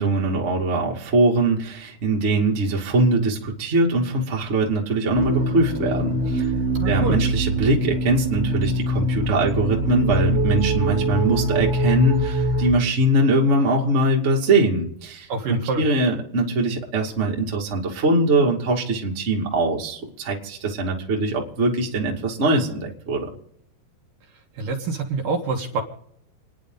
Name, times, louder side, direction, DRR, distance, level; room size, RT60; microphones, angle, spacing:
voice 1, 0.0-6.5 6.8-23.3, right 2 dB, 25° right, -2 dB, 1.8 m, -22 dB
sound 1, 5.2-12.7, equal, 5° right, 1.9 m, -23 dB
voice 2, 6.8-7.2 15.3-15.8 24.6-25.8, right 3 dB, 60° right, 1 dB, 2.8 m, -26 dB
29.5 x 10.0 x 3.9 m, 0.74 s
omnidirectional pair, 4.8 m